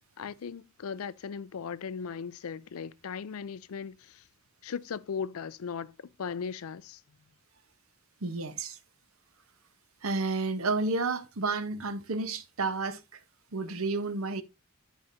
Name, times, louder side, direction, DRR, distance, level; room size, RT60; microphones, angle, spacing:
voice 1, 0.2-4.2 4.6-7.0, left 6 dB, 90° left, 0.5 m, -38 dB
voice 2, 8.2-8.8 10.0-13.0 13.5-14.4, right 3 dB, 85° right, 1.0 m, -31 dB
12.0 x 5.0 x 2.7 m
head